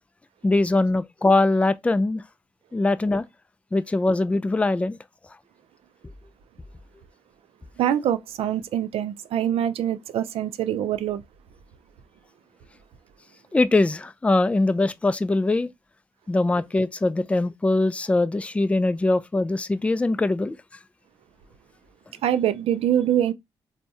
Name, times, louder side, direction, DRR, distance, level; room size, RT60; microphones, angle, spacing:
voice 1, 0.4-2.2 2.7-3.2 3.7-5.0 13.5-15.7 16.3-20.6, left 2 dB, 10° left, 0.3 m, -22 dB
voice 2, 7.8-11.2 22.2-23.3, right 10 dB, 65° right, 0.4 m, -24 dB
3.4 x 2.1 x 2.6 m
hypercardioid pair, 40°, 11 cm